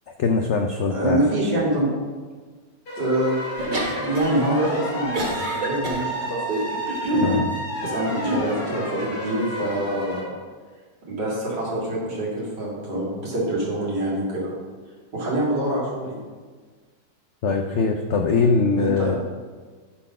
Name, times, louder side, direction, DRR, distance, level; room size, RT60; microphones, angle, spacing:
voice 1, 0.2-1.2 7.2-7.5 17.4-19.2, left 4 dB, 80° left, 4 dB, 0.6 m, -21 dB
voice 2, 0.9-1.9 3.0-3.4 3.6-6.6 7.1-7.4 7.8-10.4 11.1-14.5 15.1-16.2 18.8-19.2, right 1 dB, 75° right, -5 dB, 3.0 m, -25 dB
sound 1, 2.9-10.2, equal, 55° left, 2.4 m, -31 dB
sound 2, 3.6-4.4 4.7-6.0 6.7-7.3 8.1-8.5, right 1 dB, 30° right, 1.2 m, -27 dB
9.9 x 4.2 x 5.4 m, 1.5 s
omnidirectional pair, 1.9 m